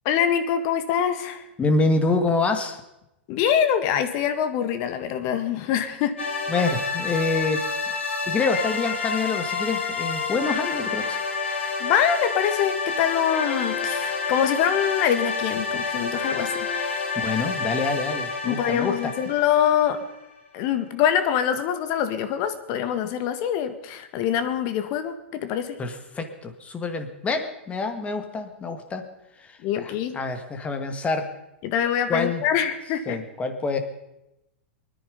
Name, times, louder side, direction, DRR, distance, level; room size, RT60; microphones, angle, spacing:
voice 1, 0.1-1.4 3.3-6.2 11.8-16.7 18.4-20.0 20.5-25.8 29.6-30.2 31.6-33.2, left 9 dB, 45° left, 9 dB, 1.8 m, -24 dB
voice 2, 1.6-2.8 6.5-11.2 17.2-19.0 25.8-29.0 29.4-31.3 32.1-32.4 33.1-33.8, left 3 dB, 20° left, 7 dB, 2.0 m, -26 dB
sound 1, 6.2-20.4, left 4 dB, 80° left, 3.3 m, -29 dB
24.0 x 10.5 x 5.3 m, 0.90 s
hypercardioid pair, 105°, 6 cm